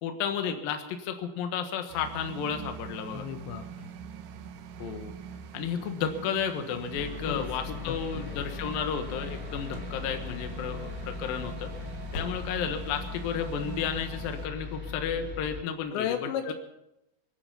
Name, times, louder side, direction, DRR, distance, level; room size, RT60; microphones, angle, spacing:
voice 1, 0.0-3.3 4.8-5.1 5.5-11.7 12.1-16.2 16.5-16.6, left 7 dB, 65° left, 6 dB, 2.7 m, -32 dB
sound 1, 1.9-14.5, right 8 dB, 75° right, 2.0 m, -43 dB
voice 2, 3.1-3.9 7.2-8.5 15.9-16.5, left 9 dB, 80° left, 7 dB, 3.1 m, -35 dB
sound 2, 6.9-15.6, left 5 dB, 5° left, 0.8 m, -39 dB
sound 3, 9.3-10.0 10.3-10.7 11.0-11.2 11.6-12.9 13.2-13.3 13.8-13.9, left 4 dB, 45° left, 2.8 m, -43 dB
26.0 x 9.8 x 5.6 m, 0.89 s
omnidirectional pair, 5.3 m